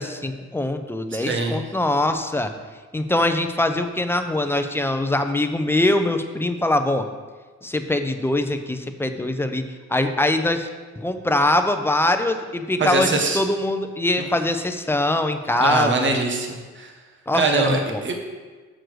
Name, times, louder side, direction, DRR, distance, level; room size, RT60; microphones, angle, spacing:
voice 1, 0.0-2.5 2.9-7.1 7.6-9.6 9.9-10.7 11.0-16.2 17.3-18.0, left 1 dB, 10° left, 7 dB, 0.7 m, -23 dB
voice 2, 1.1-1.6 12.8-13.4 15.6-16.9 17.3-18.1, right 3 dB, 40° right, 3 dB, 1.3 m, -22 dB
6.6 x 6.4 x 6.3 m, 1.4 s
cardioid pair, 90°, 30 cm